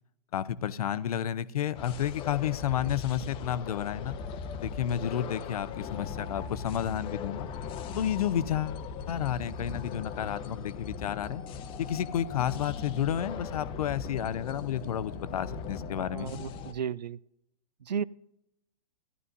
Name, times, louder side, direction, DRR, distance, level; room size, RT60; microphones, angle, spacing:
voice 1, 0.3-4.1 4.6-7.5 8.0-8.8 9.1-11.4 11.8-16.3, left 10 dB, 60° left, 0.6 m, -31 dB
sound 1, 1.7-16.7, left 5 dB, 25° left, 0.7 m, -39 dB
voice 2, 16.0-17.2 17.9-18.0, right 8 dB, 85° right, 0.4 m, -34 dB
15.5 x 11.0 x 2.6 m
hypercardioid pair, 120°, 21 cm